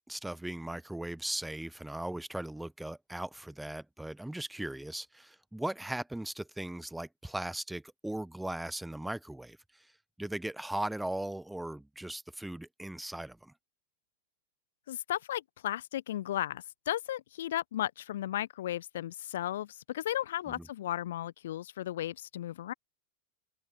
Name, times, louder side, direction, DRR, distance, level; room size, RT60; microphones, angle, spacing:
voice 1, 0.1-9.6 10.2-13.5 20.5-20.7, right 1 dB, 5° right, 0.9 m, -38 dB
voice 2, 14.9-22.7, left 12 dB, 60° left, 0.7 m, -35 dB
figure-of-eight pair, 90°, 0 cm